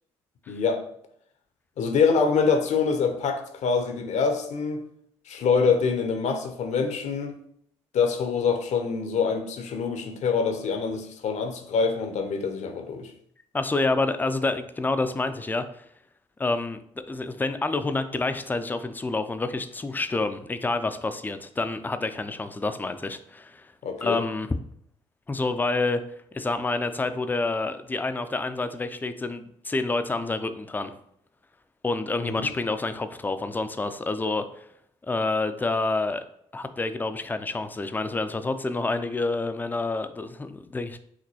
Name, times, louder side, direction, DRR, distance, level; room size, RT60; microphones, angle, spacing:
voice 1, 0.5-0.8 1.8-4.8 5.3-7.4 7.9-13.1 23.8-24.2 32.2-32.3, left 5 dB, 50° left, 6 dB, 0.7 m, -25 dB
voice 2, 13.5-15.8 16.4-16.8 17.1-23.7 24.0-24.5 25.3-26.0 26.3-30.9 31.8-34.7 35.0-36.3 36.5-41.0, left 3 dB, 10° left, 10 dB, 0.4 m, -28 dB
5.0 x 2.9 x 2.8 m, 0.70 s
figure-of-eight pair, 45°, 15 cm